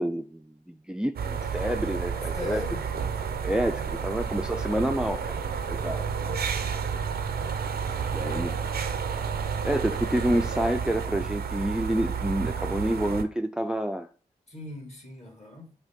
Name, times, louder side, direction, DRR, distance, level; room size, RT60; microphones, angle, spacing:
voice 1, 0.0-2.6 3.4-5.4 5.7-6.0 8.1-8.5 9.6-14.1, right 1 dB, 5° right, 0.3 m, -28 dB
sound 1, 1.2-13.2, right 6 dB, 90° right, 0.5 m, -30 dB
voice 2, 2.3-2.9 6.1-6.7 8.1-8.6 14.5-15.7, left 1 dB, 45° left, 2.0 m, -40 dB
6.1 x 2.3 x 3.6 m
cardioid pair, 40°, 16 cm